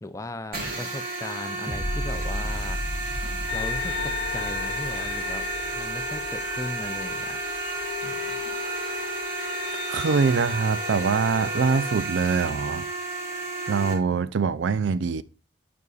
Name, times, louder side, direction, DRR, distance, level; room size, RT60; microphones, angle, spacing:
voice 1, 0.0-2.8 3.5-5.4 5.7-7.4, left 2 dB, 15° left, 0.5 m, -37 dB
sound 1, 0.5-13.9, right 3 dB, 50° right, 2.7 m, -32 dB
sound 2, 1.7-8.7 9.2-9.3, left 1 dB, 10° right, 0.8 m, -35 dB
sound 3, 3.5-12.0, left 8 dB, 85° left, 0.6 m, -35 dB
voice 2, 9.9-12.9 13.7-15.2, right 5 dB, 70° right, 0.4 m, -24 dB
9.4 x 5.3 x 2.4 m
head